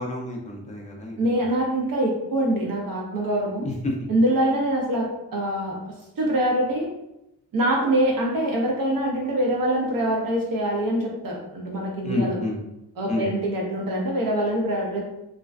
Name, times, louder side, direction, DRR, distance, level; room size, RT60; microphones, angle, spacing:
voice 1, 0.0-1.5 3.6-4.1 12.0-12.6 13.1-13.3, left 2 dB, 20° left, -1 dB, 0.5 m, -29 dB
voice 2, 1.2-3.7 4.1-5.8 6.2-6.9 7.5-12.4 13.0-15.0, right 1 dB, 60° right, -1 dB, 0.7 m, -24 dB
2.5 x 2.2 x 2.3 m, 0.88 s
cardioid pair, 105°, 39 cm